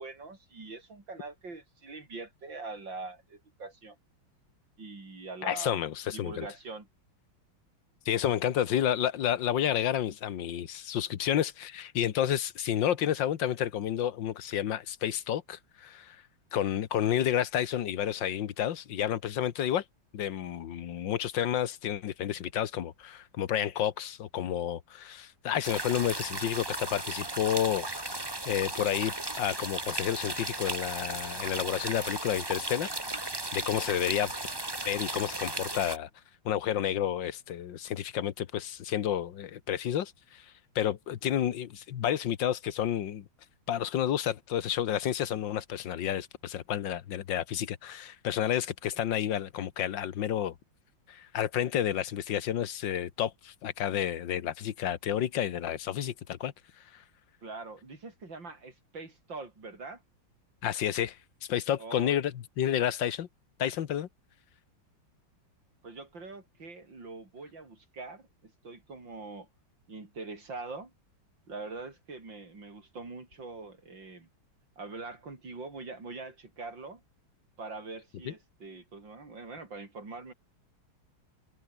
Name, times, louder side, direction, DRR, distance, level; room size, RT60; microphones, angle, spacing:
voice 1, 0.0-4.0 4.8-6.9 54.4-54.5 57.4-60.0 61.8-62.2 65.8-69.5 69.9-70.9 71.5-74.3 74.8-77.0 77.6-80.3, right 3 dB, 65° right, 5.8 m, -43 dB
voice 2, 5.4-6.5 8.1-16.2 16.5-19.8 20.1-28.1 28.5-32.9 33.5-34.3 34.9-36.1 36.5-40.5 40.8-43.3 43.7-50.6 51.1-56.5 56.9-57.0 60.6-61.2 61.5-63.3 63.6-64.1 78.3-78.4, left 10 dB, 70° left, 1.8 m, -30 dB
sound 1, 25.6-36.0, right 2 dB, 10° right, 1.8 m, -36 dB
omnidirectional pair, 2.2 m